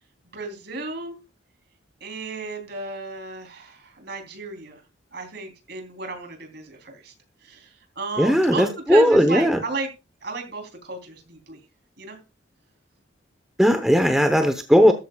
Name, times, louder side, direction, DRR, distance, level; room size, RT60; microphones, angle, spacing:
voice 1, 0.3-1.1 2.0-4.8 5.1-7.1 7.4-9.9 10.2-11.6 12.0-12.2, right 3 dB, 55° right, 4 dB, 3.5 m, -33 dB
voice 2, 8.2-9.6 13.6-14.9, equal, ahead, 6 dB, 0.9 m, -17 dB
13.5 x 13.5 x 2.4 m, 0.29 s
head